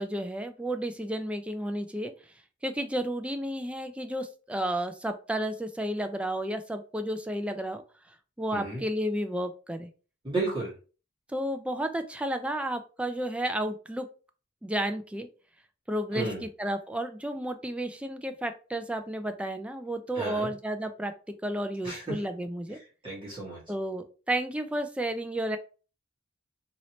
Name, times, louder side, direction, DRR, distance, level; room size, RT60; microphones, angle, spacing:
voice 1, 0.0-2.1 2.6-7.8 8.4-9.9 11.3-14.1 14.6-15.3 15.9-21.1 21.4-22.8 23.7-25.6, right 1 dB, 5° right, 7 dB, 0.3 m, -32 dB
voice 2, 8.5-8.8 10.2-10.7 16.1-16.4 20.1-20.5 21.8-22.0 23.0-23.6, right 2 dB, 25° right, -7 dB, 1.5 m, -32 dB
3.0 x 2.8 x 2.9 m, 0.36 s
head